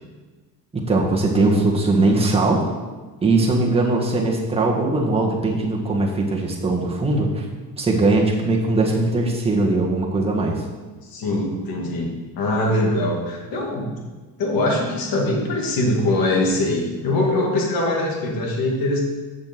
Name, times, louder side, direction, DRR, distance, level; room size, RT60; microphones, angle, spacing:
voice 1, 0.7-2.6 3.2-7.4 7.8-10.6, right 2 dB, 15° right, -2 dB, 1.7 m, -20 dB
voice 2, 11.1-14.0 14.4-19.0, left 1 dB, 70° left, -1 dB, 2.5 m, -22 dB
7.2 x 6.9 x 6.1 m, 1.3 s
cardioid pair, 115°, 36 cm